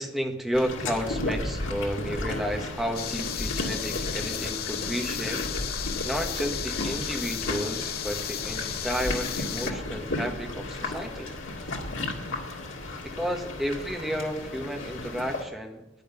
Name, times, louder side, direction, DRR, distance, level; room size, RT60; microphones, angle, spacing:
voice 1, 0.0-5.4 6.0-11.3 13.0-15.8, equal, ahead, 2 dB, 1.5 m, -32 dB
sound 1, 0.5-15.4, left 2 dB, 80° left, 2.1 m, -34 dB
sound 2, 3.0-9.7, left 11 dB, 50° left, 0.6 m, -35 dB
10.5 x 10.0 x 7.0 m, 0.99 s
head